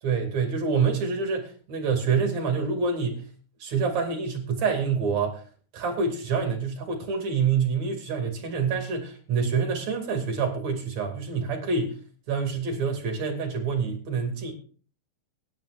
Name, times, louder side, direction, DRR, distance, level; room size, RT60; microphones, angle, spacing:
voice 1, 0.0-3.2 3.6-5.4 5.7-12.0 12.3-14.5, right 5 dB, 50° right, 3 dB, 3.5 m, -27 dB
24.5 x 10.5 x 2.5 m, 0.43 s
omnidirectional pair, 4.5 m